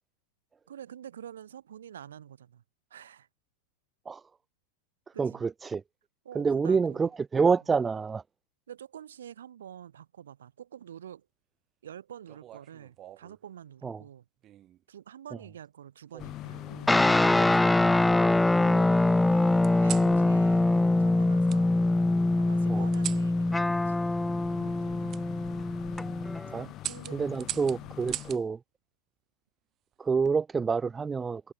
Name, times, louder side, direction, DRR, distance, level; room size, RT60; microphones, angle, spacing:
voice 1, 0.7-2.6 2.9-3.3 5.1-5.5 6.2-7.1 8.7-11.3 11.8-14.3 14.9-17.0 17.2-18.2 18.5-20.7 21.0-21.8 22.3-24.0 24.6-25.2 26.5-28.1, right 9 dB, 65° right, 4.8 m, -47 dB
voice 2, 5.2-5.8 6.4-8.2 13.8-14.0 22.7-22.9 26.5-26.7 27.1-28.6 30.0-31.5, right 5 dB, 15° right, 0.3 m, -27 dB
sound 1, 12.3-13.4 14.4-14.8 16.1-16.9 17.5-18.4 19.6-20.1 21.5-21.6 22.9-23.3 25.1-25.2 25.8-26.1 26.8-28.4 29.9-30.3, right 12 dB, 30° right, 6.1 m, -41 dB
sound 2, 16.2-28.4, left 15 dB, 35° left, 2.3 m, -44 dB
sound 3, 16.9-26.6, left 2 dB, 5° left, 0.7 m, -24 dB
figure-of-eight pair, 90°, 0 cm